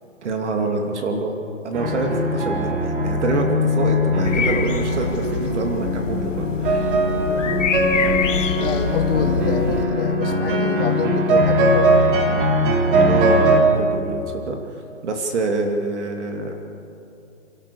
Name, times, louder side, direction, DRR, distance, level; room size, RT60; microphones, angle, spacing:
voice 1, 0.2-1.4 1.6-7.0 13.0-14.7 15.0-16.5, right 3 dB, 60° right, 3 dB, 2.6 m, -26 dB
sound 1, 1.7-13.6, equal, 40° right, 3.2 m, -20 dB
sound 2, 4.3-9.9, left 6 dB, 70° left, 1.5 m, -26 dB
voice 2, 7.3-7.7 8.0-12.0, left 6 dB, 45° left, 3 dB, 2.6 m, -28 dB
29.5 x 13.0 x 7.0 m, 2.7 s
hypercardioid pair, 150°, 39 cm